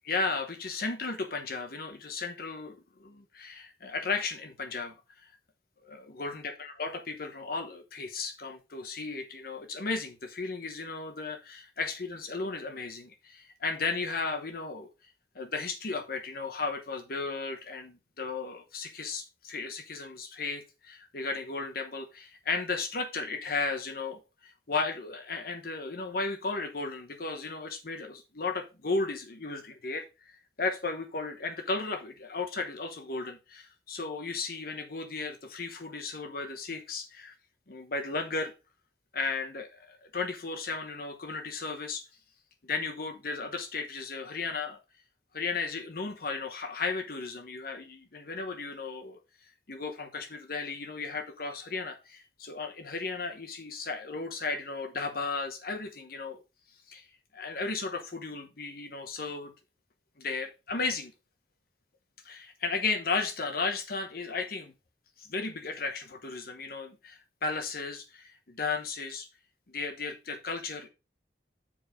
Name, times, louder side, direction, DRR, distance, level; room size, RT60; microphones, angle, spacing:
voice 1, 0.1-5.3 5.8-14.9 15.3-37.3 37.7-38.5 39.1-42.0 42.6-44.8 45.3-49.2 49.7-56.4 56.9-57.0 57.3-59.5 60.2-61.1 62.2-64.7 65.2-69.3 69.7-70.9, left 4 dB, 55° left, 1.0 m, -35 dB
7.4 x 4.6 x 5.0 m
head